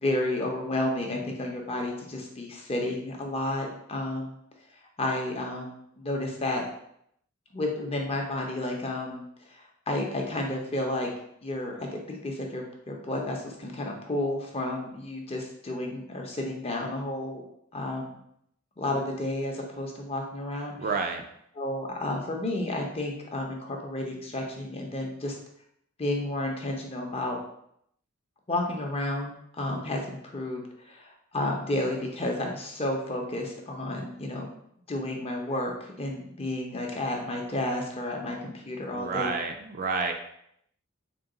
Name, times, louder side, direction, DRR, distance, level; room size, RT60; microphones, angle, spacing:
voice 1, 0.0-4.4 5.0-6.7 7.5-9.2 9.5-11.1 11.4-17.4 17.7-18.2 18.8-21.1 21.5-25.4 26.0-27.4 28.5-34.5 34.9-39.3, left 1 dB, 30° left, 0 dB, 0.6 m, -31 dB
voice 2, 20.8-21.2 38.9-40.1, right 4 dB, 40° right, 5 dB, 0.3 m, -29 dB
3.8 x 2.2 x 3.8 m, 0.72 s
head